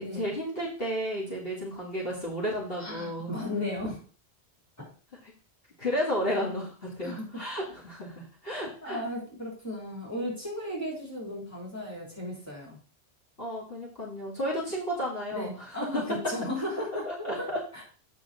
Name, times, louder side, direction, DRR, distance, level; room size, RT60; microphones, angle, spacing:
voice 1, 0.0-3.3 5.2-5.3 5.8-9.0 13.4-16.0 17.0-17.6, equal, 60° left, -5 dB, 2.6 m, -33 dB
voice 2, 2.8-4.0 4.8-4.9 7.0-7.3 8.8-12.8 15.3-17.1 17.4-17.5 17.7-17.8, left 1 dB, 15° left, -3 dB, 3.6 m, -35 dB
8.6 x 5.9 x 4.2 m, 0.40 s
omnidirectional pair, 1.1 m